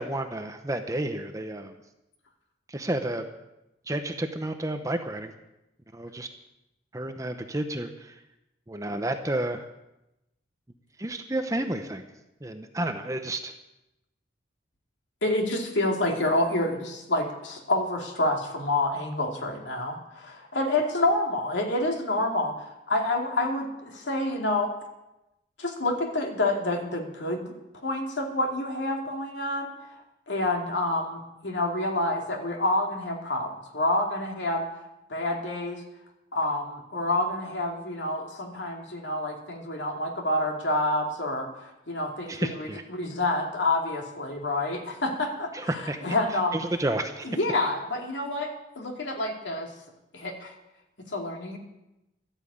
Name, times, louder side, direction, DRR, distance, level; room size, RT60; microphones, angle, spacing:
voice 1, 0.0-1.7 2.7-3.3 3.9-5.3 5.9-6.3 6.9-8.2 8.7-9.7 11.0-12.1 12.4-13.5 42.3-42.8 45.5-46.0 46.5-47.3, right 1 dB, 15° right, 7 dB, 0.8 m, -31 dB
voice 2, 15.2-24.7 25.6-27.5 27.8-29.7 30.3-34.7 35.1-35.8 36.3-45.5 46.0-46.6 47.2-48.5 48.8-49.7 50.1-50.5 51.1-51.6, left 2 dB, 80° left, 2 dB, 2.5 m, -28 dB
13.0 x 9.0 x 8.6 m, 0.93 s
head